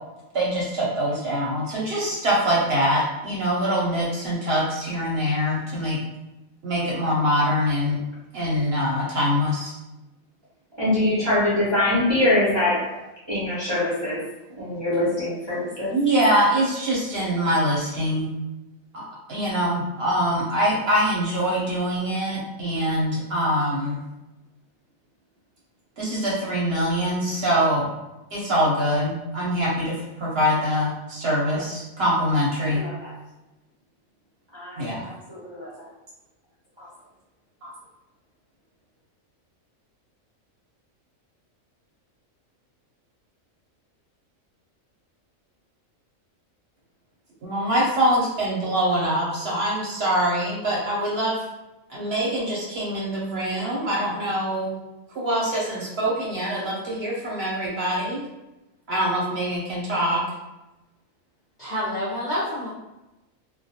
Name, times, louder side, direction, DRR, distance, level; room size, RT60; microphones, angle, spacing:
voice 1, 0.3-6.0 6.6-8.0 8.3-9.7 15.9-18.3 18.9-24.0 26.0-27.9 28.3-32.8 34.8-35.0 37.6-37.7 47.4-51.4 51.9-54.7 55.1-58.3 58.9-60.2, equal, 60° right, -5 dB, 0.8 m, -24 dB
voice 2, 10.8-14.2 14.6-15.9 31.5-31.6 32.7-33.1 34.5-35.8 36.8-36.9, left 1 dB, 30° right, -9 dB, 0.5 m, -24 dB
voice 3, 61.6-62.7, equal, 50° left, -9 dB, 0.5 m, -28 dB
2.2 x 2.1 x 2.7 m, 0.99 s
omnidirectional pair, 1.4 m